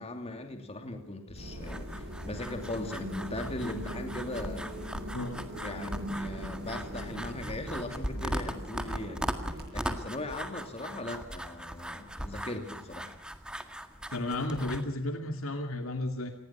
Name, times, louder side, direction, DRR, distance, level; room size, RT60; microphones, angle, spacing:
voice 1, 0.0-4.8 5.6-13.2, left 2 dB, 30° left, 5 dB, 2.8 m, -39 dB
Purr, 1.3-8.3, equal, 65° left, 4.4 m, -45 dB
sound 1, 1.3-9.7, equal, 55° right, 6.4 m, -42 dB
sound 2, 1.6-14.8, equal, 5° right, 1.8 m, -39 dB
voice 2, 5.1-5.4 14.1-16.3, left 1 dB, 85° left, 5 dB, 2.5 m, -33 dB
27.5 x 20.0 x 5.9 m, 0.77 s
head